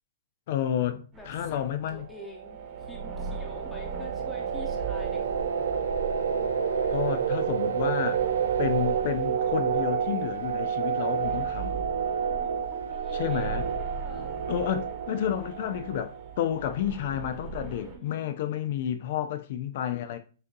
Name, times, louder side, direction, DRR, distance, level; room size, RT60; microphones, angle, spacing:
voice 1, 0.5-2.1 6.9-8.2 8.6-11.8 13.1-13.7 14.5-20.2, left 10 dB, 55° left, 0.4 m, -30 dB
voice 2, 1.1-1.6 1.9-5.4 12.2-14.4 17.8-18.4, left 1 dB, 10° left, 0.9 m, -47 dB
sound 1, 1.1-18.0, right 6 dB, 20° right, 1.0 m, -41 dB
sound 2, 2.0-16.6, right 7 dB, 85° right, 0.5 m, -30 dB
6.2 x 2.6 x 2.6 m
hypercardioid pair, 155°, 0 cm